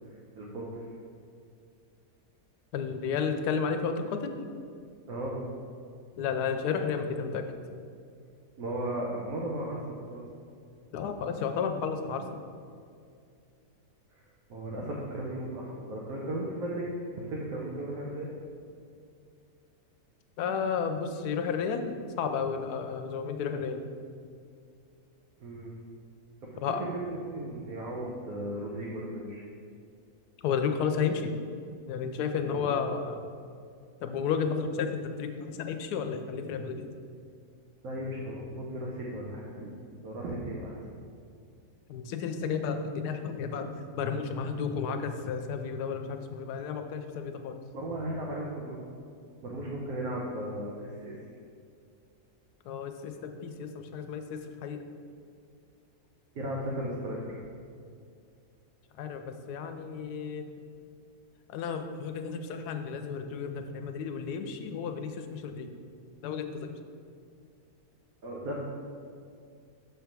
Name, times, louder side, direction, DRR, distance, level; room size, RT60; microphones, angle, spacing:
voice 1, 0.4-0.8 5.1-5.4 8.6-10.2 14.1-14.2 14.5-16.9 17.2-18.3 25.4-25.8 26.8-29.4 32.4-32.7 37.8-39.7 40.0-40.8 47.7-48.8 49.4-51.2 56.3-57.4 68.2-68.6, right 1 dB, 70° right, -4 dB, 1.2 m, -36 dB
voice 2, 2.7-4.3 6.2-7.5 10.9-12.4 20.4-23.9 26.6-26.8 30.4-31.3 31.9-33.2 34.0-36.9 41.9-47.6 52.6-54.8 59.0-60.5 61.5-65.7 66.2-66.8, left 6 dB, 80° left, 6 dB, 1.1 m, -32 dB
6.6 x 3.4 x 5.9 m, 2.3 s
omnidirectional pair, 1.7 m